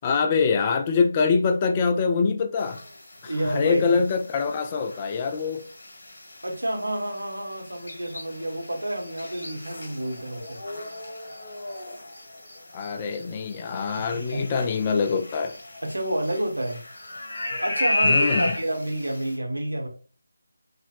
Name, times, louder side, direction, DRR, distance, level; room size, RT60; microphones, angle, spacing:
voice 1, 0.0-2.8 3.2-5.6 12.7-15.6 18.0-18.5, left 5 dB, 20° left, 0.3 m, -24 dB
sound 1, 2.6-19.3, left 2 dB, 45° left, 1.7 m, -34 dB
voice 2, 3.2-4.0 6.4-10.6 14.0-14.4 15.8-16.8 17.6-19.9, right 1 dB, 75° right, 1.2 m, -29 dB
4.9 x 3.3 x 2.4 m
figure-of-eight pair, 155°, 0 cm